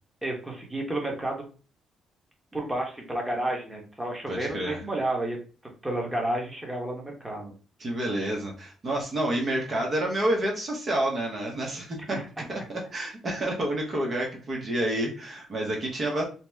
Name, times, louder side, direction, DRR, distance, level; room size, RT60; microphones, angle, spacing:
voice 1, 0.2-1.5 2.5-5.4 5.8-7.5 12.1-12.2, right 1 dB, 10° right, 0 dB, 1.0 m, -31 dB
voice 2, 4.3-4.8 7.8-12.2 12.5-16.2, right 1 dB, 40° right, -1 dB, 0.8 m, -29 dB
2.8 x 2.0 x 3.4 m, 0.38 s
cardioid pair, 90°, 0 cm